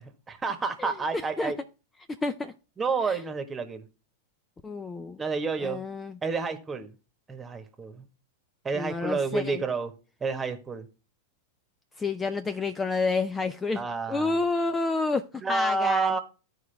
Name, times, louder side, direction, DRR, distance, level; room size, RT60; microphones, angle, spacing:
voice 1, 0.0-1.6 2.8-3.8 5.2-5.8 6.2-6.9 7.3-8.0 8.6-9.9 10.2-10.9 13.7-14.4 15.4-16.2, right 4 dB, 20° right, 1.4 m, -29 dB
voice 2, 0.8-1.5 2.2-2.5 3.0-3.2 4.6-5.2 5.6-6.2 8.7-9.6 12.0-15.2 15.5-16.2, left 3 dB, 15° left, 0.5 m, -29 dB
13.0 x 4.7 x 3.4 m
hypercardioid pair, 100°, 0 cm